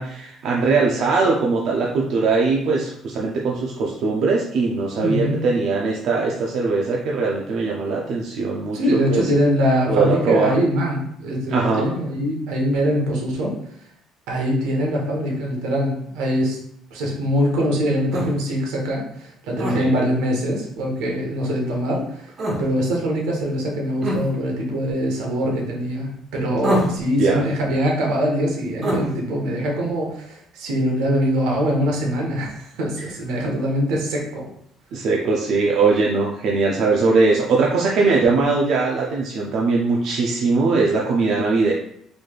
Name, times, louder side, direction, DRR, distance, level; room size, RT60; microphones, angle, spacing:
voice 1, 0.0-8.8 9.1-9.2 9.9-10.5 11.5-11.9 19.7-19.9 26.6-26.7 27.2-27.4 33.0-33.1 34.9-41.7, right 4 dB, 65° right, -2 dB, 0.5 m, -20 dB
voice 2, 5.0-5.4 8.7-13.5 14.3-16.6 16.9-22.3 22.6-34.5, equal, 90° right, -1 dB, 1.1 m, -23 dB
sound 1, 18.1-18.3 19.6-19.8 22.4-22.6 24.0-24.2 26.6-27.0 28.8-29.0, equal, 40° right, 1.2 m, -23 dB
4.1 x 3.2 x 2.4 m, 0.69 s
cardioid pair, 125°, 0 cm